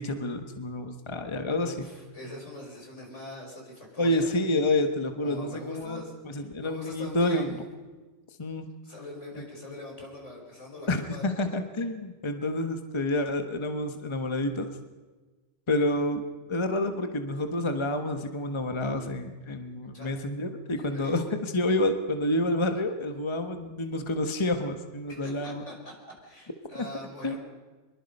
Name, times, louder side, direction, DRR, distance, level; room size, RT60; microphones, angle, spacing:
voice 1, 0.0-1.8 4.0-7.6 8.4-8.7 9.4-9.5 10.9-14.7 15.7-16.2 16.5-25.6 26.8-26.9 27.2-27.3, left 1 dB, 25° left, 6 dB, 1.2 m, -29 dB
voice 2, 1.6-4.3 5.2-7.6 8.8-11.6 19.9-20.1 20.8-21.3 25.1-25.9 26.2-27.4, left 1 dB, 70° left, 0 dB, 5.9 m, -42 dB
24.5 x 22.5 x 5.4 m, 1.3 s
omnidirectional pair, 1.3 m